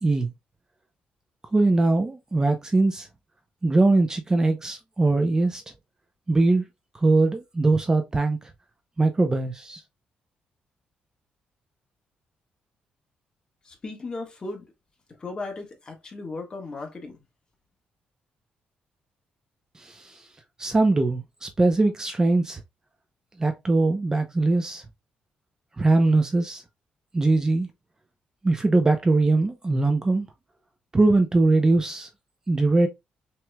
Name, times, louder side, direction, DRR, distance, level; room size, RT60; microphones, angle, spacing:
voice 1, 1.5-3.1 3.6-5.6 6.3-6.7 6.9-8.4 9.0-9.8 19.8-20.2 20.6-22.6 23.4-24.8 25.8-26.6 27.1-27.7 28.4-30.3 30.9-32.1 32.5-32.9, right 2 dB, 20° right, 0.6 m, -21 dB
voice 2, 13.6-14.7 15.2-17.2, left 3 dB, 30° left, 1.5 m, -36 dB
6.0 x 3.0 x 2.2 m
cardioid pair, 115°, 3 cm